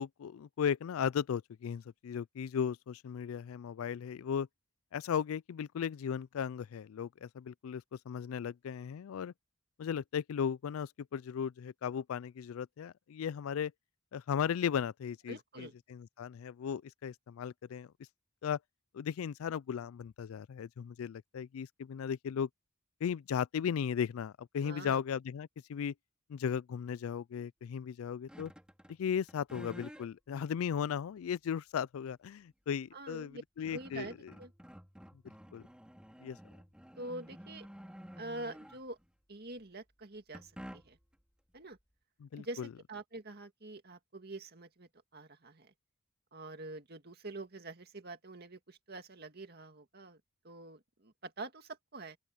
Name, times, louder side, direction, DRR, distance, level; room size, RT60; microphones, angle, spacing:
voice 1, 0.0-4.5 4.9-9.3 9.8-13.7 14.1-17.9 18.4-18.6 18.9-22.5 23.0-25.9 26.3-28.5 29.0-34.3 35.5-35.6 36.2-36.4 42.2-42.7, left 7 dB, 85° left, 0.3 m, -36 dB
voice 2, 15.3-15.7 24.6-25.0 32.9-33.4 33.7-34.5 37.0-37.7 38.2-39.0 39.3-41.0 41.5-41.8 42.4-45.7 46.3-52.2, right 2 dB, 50° right, 2.1 m, -46 dB
sound 1, 28.3-29.0 29.3-30.1 30.8-30.9 32.9-33.0 33.3-39.1 40.3-41.1, equal, 5° right, 4.2 m, -51 dB
open air
head